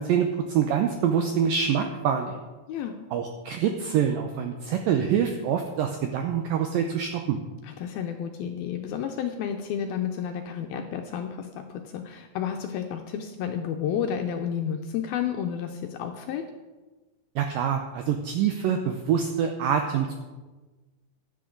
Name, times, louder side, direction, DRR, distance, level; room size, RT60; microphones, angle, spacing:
voice 1, 0.0-2.4 3.1-7.4 17.4-20.1, right 8 dB, 85° right, 5 dB, 2.0 m, -25 dB
voice 2, 7.6-16.4, left 8 dB, 80° left, 4 dB, 2.2 m, -31 dB
15.5 x 10.5 x 3.9 m, 1.2 s
omnidirectional pair, 4.9 m